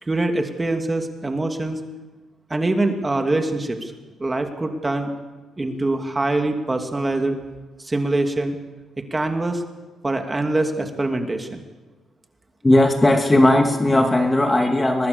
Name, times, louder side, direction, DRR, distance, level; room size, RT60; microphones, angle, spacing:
voice 1, 0.1-1.8 2.5-3.9 4.2-5.1 5.6-7.4 7.8-8.6 9.0-9.6 10.0-11.6, right 2 dB, 20° right, 5 dB, 2.7 m, -24 dB
voice 2, 12.6-15.1, left 1 dB, 15° left, 4 dB, 2.4 m, -17 dB
24.0 x 20.5 x 7.0 m, 1.2 s
cardioid pair, 90°, 0 cm